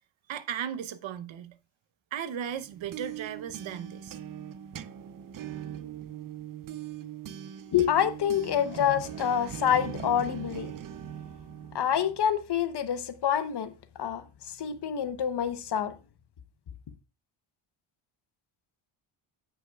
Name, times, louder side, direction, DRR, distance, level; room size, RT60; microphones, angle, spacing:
voice 1, 0.3-1.6 2.1-4.2, right 9 dB, 65° right, 0.9 m, -36 dB
sound 1, 2.6-12.2, right 10 dB, 40° right, 0.6 m, -41 dB
voice 2, 7.7-10.7 11.7-13.7 14.0-15.9, left 9 dB, 50° left, 1.0 m, -27 dB
16.0 x 5.7 x 2.3 m
cardioid pair, 110°, 50 cm